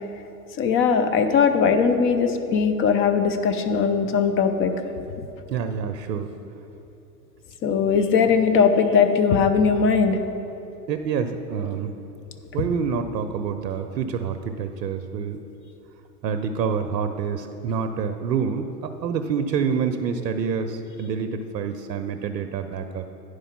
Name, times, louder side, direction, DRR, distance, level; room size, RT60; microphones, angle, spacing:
voice 1, 0.6-4.7 7.6-10.2, left 6 dB, 25° left, 8 dB, 0.5 m, -19 dB
voice 2, 5.5-6.3 10.9-11.9 12.5-15.4 16.2-23.1, right 6 dB, 90° right, 8 dB, 0.6 m, -27 dB
10.0 x 4.9 x 5.8 m, 2.9 s
hypercardioid pair, 110°, 48 cm